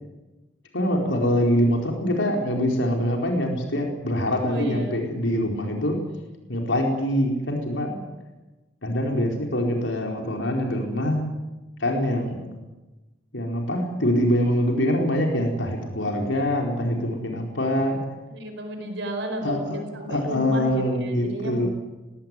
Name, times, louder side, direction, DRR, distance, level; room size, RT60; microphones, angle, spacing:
voice 1, 0.7-6.0 6.5-8.0 8.8-11.2 11.8-12.4 13.3-18.0 19.4-19.8 20.1-21.7, equal, 80° left, 1 dB, 4.5 m, -24 dB
voice 2, 4.5-5.0 18.3-21.7, right 1 dB, 70° right, 5 dB, 4.8 m, -33 dB
20.5 x 18.0 x 9.8 m, 1.1 s
head